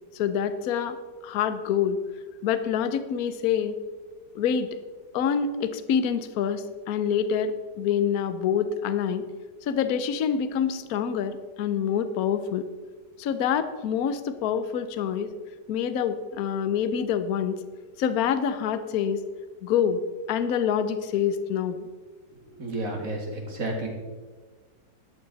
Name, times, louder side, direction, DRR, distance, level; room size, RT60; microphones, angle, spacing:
voice 1, 0.1-1.0 1.2-2.0 2.4-3.7 4.3-4.7 5.1-9.2 9.6-12.7 13.2-15.3 15.7-17.6 18.0-19.2 19.6-20.0 20.3-21.9, left 8 dB, 65° left, 11 dB, 1.2 m, -26 dB
voice 2, 22.6-23.9, right 2 dB, 50° right, 1 dB, 2.7 m, -31 dB
13.0 x 11.5 x 4.1 m, 1.4 s
omnidirectional pair, 1.9 m